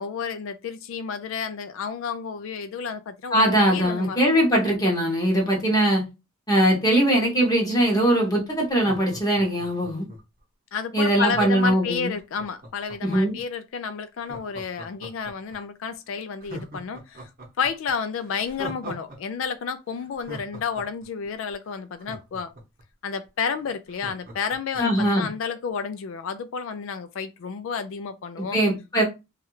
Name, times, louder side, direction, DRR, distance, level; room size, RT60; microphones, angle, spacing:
voice 1, 0.0-4.2 10.7-17.3 17.6-22.5 23.0-28.6 29.0-29.1, left 6 dB, 60° left, 0.3 m, -31 dB
voice 2, 3.3-6.0 6.5-10.0 10.9-12.1 13.0-13.3 24.8-25.3 28.4-29.0, right 1 dB, 15° left, 0.8 m, -21 dB
Laughter, 8.7-10.4 11.2-13.4 14.2-15.6 15.9-16.0 16.4-19.2 19.4-19.5 19.9-22.8 23.3-23.4 23.6-25.3 25.7-25.8, right 1 dB, 40° right, 0.9 m, -41 dB
3.1 x 2.3 x 3.1 m
head